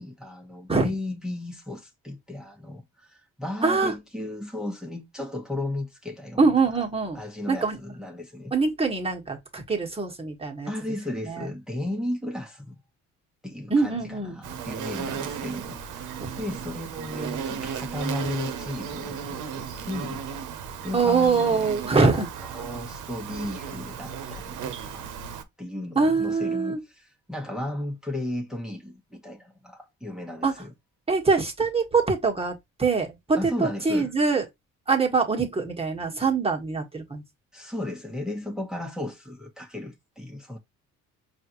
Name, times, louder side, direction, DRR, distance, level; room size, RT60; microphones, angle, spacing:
voice 1, 0.0-6.5 7.1-8.5 10.6-12.8 13.4-20.2 20.8-25.1 25.6-30.7 33.4-34.1 37.5-40.6, left 1 dB, ahead, 1.2 m, -35 dB
voice 2, 3.6-3.9 6.4-7.2 7.5-7.8 8.5-10.7 11.3-11.4 13.7-14.4 16.2-16.3 20.9-22.3 25.9-26.8 30.4-30.5 31.1-34.4 34.9-37.2, right 4 dB, 20° right, 1.4 m, -24 dB
Insect, 14.4-25.4, right 7 dB, 90° right, 0.8 m, -35 dB
5.0 x 2.6 x 3.0 m
cardioid pair, 90°, 30 cm